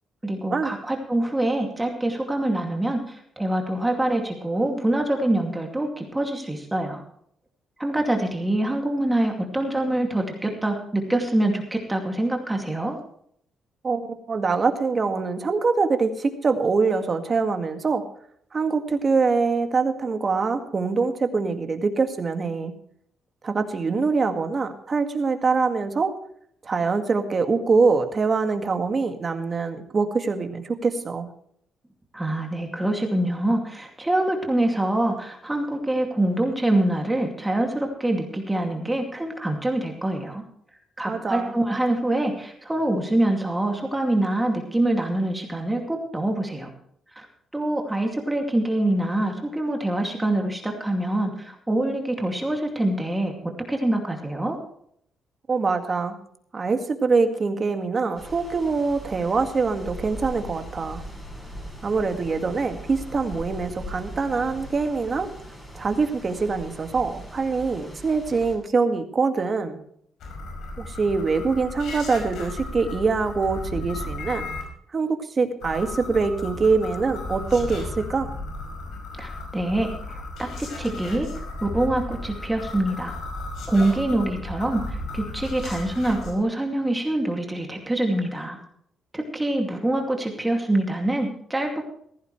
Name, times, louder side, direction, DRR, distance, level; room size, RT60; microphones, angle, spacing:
voice 1, 0.2-7.0 7.8-13.0 32.1-40.4 41.0-46.7 47.1-47.3 47.5-54.6 79.2-81.3 81.6-83.2 83.7-88.6 89.1-91.8, right 1 dB, 10° right, 2 dB, 2.5 m, -25 dB
voice 2, 13.8-18.0 18.5-22.7 23.4-26.1 26.6-31.3 41.0-41.5 55.5-56.2 56.5-61.0 61.8-65.3 65.7-69.8 70.8-74.5 74.9-78.3, right 4 dB, 35° right, 6 dB, 2.0 m, -24 dB
sound 1, 58.2-68.6, equal, 15° left, 6.4 m, -40 dB
Lost Cosmonaut Transmission, 70.2-74.6 75.6-86.3, left 2 dB, 75° left, 5.2 m, -35 dB
15.5 x 15.0 x 3.2 m, 0.66 s
cardioid pair, 90°, 0 cm